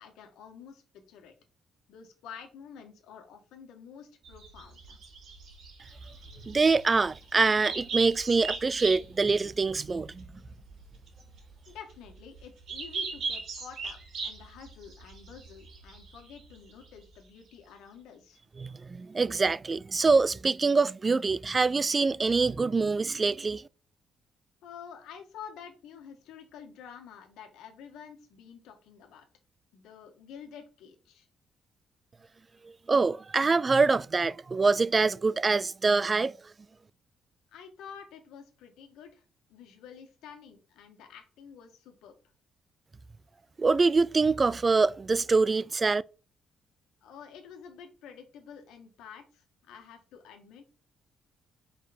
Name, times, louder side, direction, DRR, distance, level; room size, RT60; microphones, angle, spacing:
voice 1, 0.0-1.3 1.9-5.0 11.7-14.0 14.2-18.4 24.6-29.2 29.7-31.3 37.5-39.2 39.5-42.1 47.0-50.6, left 7 dB, 90° left, 1.6 m, -49 dB
sound 1, 4.2-17.1, right 4 dB, 70° right, 2.9 m, -39 dB
voice 2, 6.4-10.2 18.6-23.6 32.9-36.3 43.6-46.0, right 4 dB, 30° right, 0.3 m, -25 dB
5.0 x 4.4 x 4.3 m
cardioid pair, 90°, 0 cm